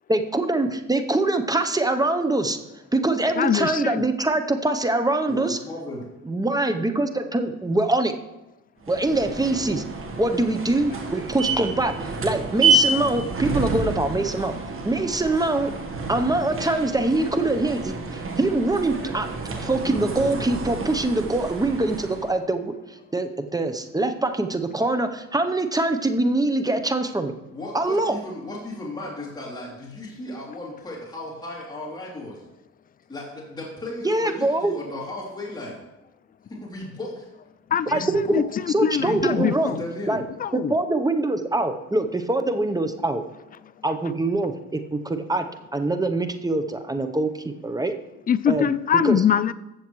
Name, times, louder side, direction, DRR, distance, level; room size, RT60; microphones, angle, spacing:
voice 1, 0.1-2.6 2.9-5.6 6.2-8.1 8.9-9.8 10.2-11.9 12.2-14.5 14.8-15.7 16.1-19.3 19.6-27.3 27.7-28.1 34.0-34.8 37.9-38.4 38.7-39.8 40.1-40.2 40.5-43.2 43.8-45.5 45.7-47.9 48.5-48.6 49.0-49.2, right 2 dB, 10° right, 0.7 m, -24 dB
voice 2, 3.4-4.1 37.7-39.8 40.4-40.7 48.3-49.5, left 8 dB, 30° left, 0.4 m, -23 dB
voice 3, 5.3-6.1 27.5-32.5 33.1-35.8 36.5-37.3 37.8-38.4 38.9-40.2, left 1 dB, 15° left, 2.9 m, -35 dB
sound 1, 8.8-22.4, right 3 dB, 45° right, 1.4 m, -29 dB
14.5 x 7.2 x 3.1 m
cardioid pair, 90°, 30 cm